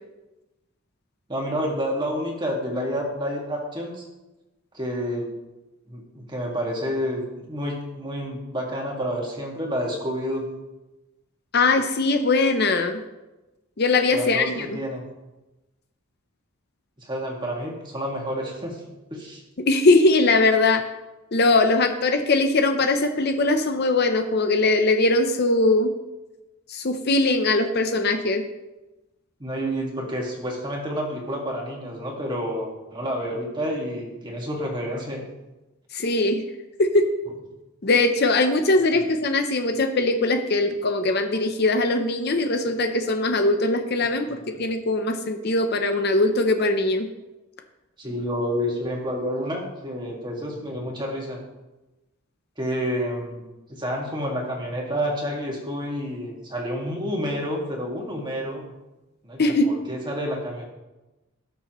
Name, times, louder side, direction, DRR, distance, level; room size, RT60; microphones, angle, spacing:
voice 1, 1.3-4.1 4.7-5.4 5.9-10.5 14.1-15.0 17.0-18.8 19.1-19.4 29.4-35.2 48.0-51.4 52.6-53.4 53.7-58.7 59.2-60.6, equal, 20° right, -1 dB, 1.9 m, -29 dB
voice 2, 11.5-13.0 13.8-14.7 19.7-20.8 21.3-25.9 26.7-28.4 35.9-36.4 36.8-37.0 37.8-47.1 59.4-59.7, left 2 dB, 45° left, 6 dB, 0.7 m, -21 dB
17.0 x 6.7 x 3.1 m, 1.0 s
head